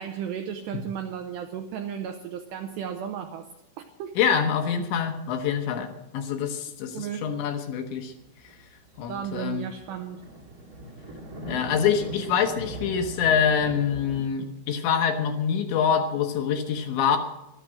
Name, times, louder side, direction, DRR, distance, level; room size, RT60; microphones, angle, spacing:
voice 1, 0.0-3.5 3.8-4.2 6.9-7.4 9.1-10.2, right 8 dB, 85° right, 6 dB, 2.5 m, -34 dB
voice 2, 4.2-8.1 9.0-9.7 11.5-17.2, left 7 dB, 75° left, 6 dB, 3.0 m, -25 dB
sound 1, 8.0-14.2, right 1 dB, 45° right, 1.1 m, -40 dB
13.5 x 13.0 x 6.3 m, 0.90 s
omnidirectional pair, 5.9 m